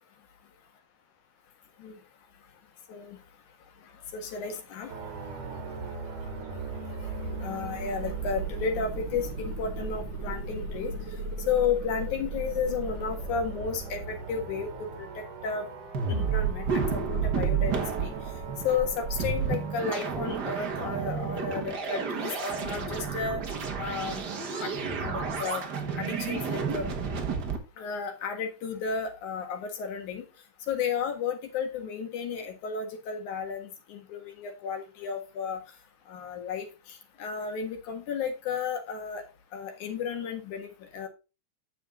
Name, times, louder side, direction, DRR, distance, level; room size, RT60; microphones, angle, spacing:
voice 1, 4.1-4.9 7.4-10.9 11.5-15.1 15.4-15.6 16.1-18.1 18.6-23.4 23.8-24.2 24.5-24.7 25.0-25.7 26.0-26.9 27.8-30.2 30.7-35.6 36.1-39.2 39.5-40.7 40.9-41.1, left 6 dB, 75° left, 5 dB, 3.1 m, -33 dB
sound 1, 4.9-20.7, right 4 dB, 80° right, 3.4 m, -38 dB
sound 2, 15.9-27.6, right 5 dB, 45° right, 1.5 m, -31 dB
9.2 x 7.1 x 3.7 m, 0.29 s
omnidirectional pair, 3.6 m